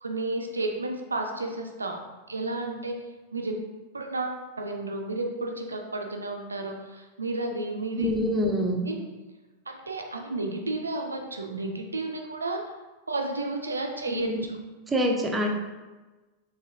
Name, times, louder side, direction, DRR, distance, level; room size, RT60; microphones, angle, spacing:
voice 1, 0.0-2.0 2.3-2.9 3.3-3.6 3.9-8.1 8.8-9.0 9.7-12.6 13.1-14.3, right 2 dB, 75° right, 3 dB, 0.4 m, -32 dB
voice 2, 8.0-8.9 14.1-14.5 14.9-15.5, equal, 15° right, 1 dB, 0.5 m, -26 dB
4.0 x 2.8 x 2.6 m, 1.2 s
figure-of-eight pair, 90°, 0 cm